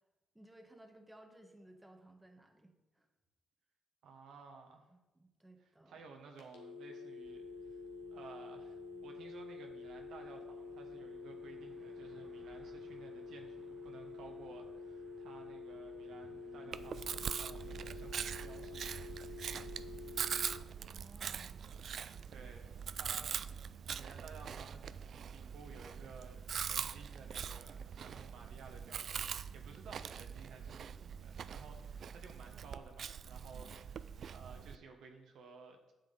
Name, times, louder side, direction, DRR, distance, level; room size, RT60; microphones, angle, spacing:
voice 1, 0.3-3.1 4.9-6.1 20.9-21.6 33.5-33.8, right 1 dB, 10° right, 4 dB, 1.2 m, -59 dB
voice 2, 4.0-4.9 5.6-7.8 8.1-19.2 22.3-34.0 34.3-35.9, right 4 dB, 75° right, 3 dB, 1.2 m, -56 dB
sound 1, 6.4-20.6, left 4 dB, 90° left, 1.4 m, -48 dB
sound 2, 7.2-20.1, right 4 dB, 40° right, 0.9 m, -64 dB
Chewing mastication, 16.7-34.8, right 7 dB, 55° right, 0.3 m, -43 dB
8.7 x 7.5 x 4.0 m, 1.1 s
cardioid pair, 90°, 0 cm